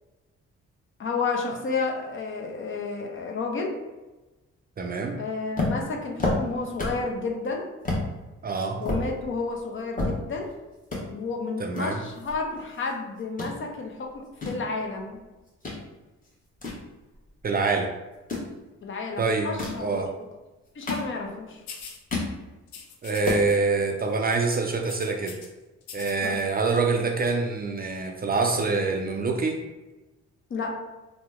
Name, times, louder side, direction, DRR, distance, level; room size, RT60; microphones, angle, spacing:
voice 1, 1.0-3.7 5.2-7.7 8.8-10.5 11.1-15.2 18.8-20.1 20.8-21.6 26.2-26.4 30.5-30.8, left 4 dB, 45° left, 1 dB, 0.6 m, -31 dB
voice 2, 4.8-5.2 8.4-8.8 11.6-12.0 17.4-17.9 19.2-19.5 19.8-20.1 23.0-25.4 25.9-29.6, right 4 dB, 30° right, 3 dB, 0.4 m, -25 dB
sound 1, 5.6-7.1 7.4-7.5 7.8-8.1 8.5-10.5 10.8-11.0 11.7-12.9 13.2-13.5 14.1-15.8 16.2-17.5 18.1-18.5 19.4-19.9 20.5-21.5 21.8-22.4 22.8-22.9 23.1-23.5, left 2 dB, 30° left, 1.0 m, -30 dB
sound 2, 21.7-22.0 22.7-23.6 23.8-24.0 24.3-25.5 25.8-26.4, left 6 dB, 85° left, 0.6 m, -43 dB
2.9 x 2.1 x 3.5 m, 1.1 s
cardioid pair, 85°, 29 cm